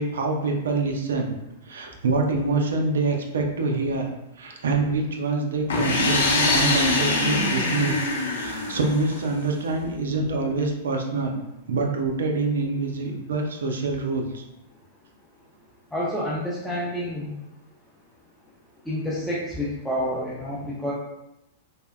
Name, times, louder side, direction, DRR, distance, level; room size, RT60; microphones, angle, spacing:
voice 1, 0.0-1.3 1.6-4.1 4.4-11.4 11.7-14.4, right 3 dB, 75° right, 2 dB, 0.5 m, -26 dB
sound 1, 5.7-9.4, left 3 dB, 75° left, 0.6 m, -23 dB
voice 2, 15.9-17.3 18.9-20.9, equal, 5° left, -7 dB, 0.5 m, -28 dB
3.3 x 2.0 x 2.2 m, 0.90 s
hypercardioid pair, 105°, 0 cm